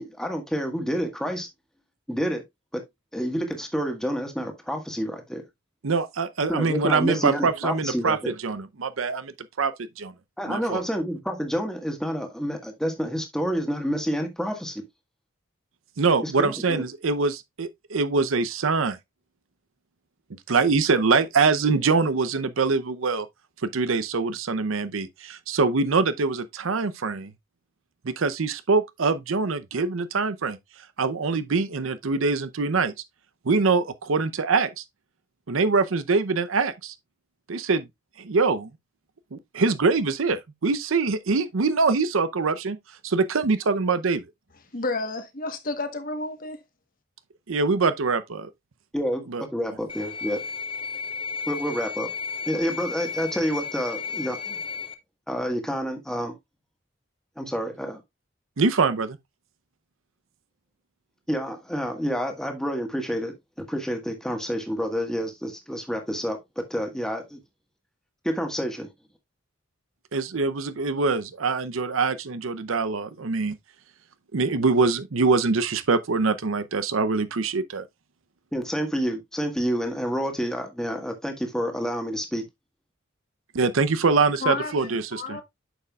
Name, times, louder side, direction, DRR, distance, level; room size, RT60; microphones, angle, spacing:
voice 1, 0.0-1.5 2.1-2.4 2.7-2.8 3.1-5.4 6.5-8.3 10.4-14.8 16.2-16.8 48.9-50.4 51.5-52.1 52.5-54.6 55.3-56.3 57.4-58.0 61.3-66.4 66.7-67.4 68.2-68.9 78.5-82.4, equal, 5° left, 1.5 m, -28 dB
voice 2, 5.8-10.1 10.5-10.8 16.0-19.0 20.3-23.3 23.6-27.3 28.0-30.6 31.0-32.9 33.4-34.8 35.5-36.9 37.5-37.9 38.2-38.7 39.3-42.8 43.0-44.2 47.5-48.5 49.3-49.4 58.6-59.2 70.1-73.5 74.3-77.9 83.5-85.4, right 4 dB, 80° right, 0.7 m, -24 dB
voice 3, 44.7-46.6 84.4-85.4, left 3 dB, 45° left, 1.2 m, -31 dB
sound 1, 49.9-54.9, left 5 dB, 25° left, 0.8 m, -33 dB
9.1 x 6.7 x 2.3 m
head